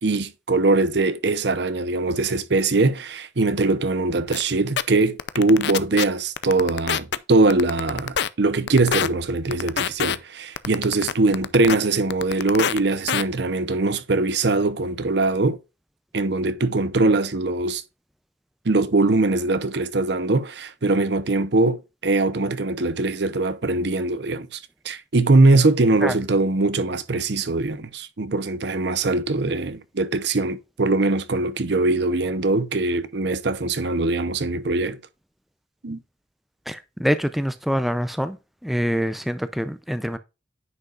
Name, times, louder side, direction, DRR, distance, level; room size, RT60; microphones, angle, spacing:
voice 1, 0.0-15.6 16.1-17.8 18.6-35.0 35.8-36.0, right 2 dB, 65° right, 0.8 m, -22 dB
sound 1, 4.3-4.4 4.8-4.9 5.2-6.0 6.4-7.2 7.5-8.3 8.7-9.1 9.5-10.2 10.6-11.8 12.1-12.8 13.1-13.2, left 8 dB, 65° left, 0.5 m, -24 dB
voice 2, 36.7-38.4 38.6-40.2, equal, ahead, 0.4 m, -25 dB
9.6 x 5.5 x 2.4 m
head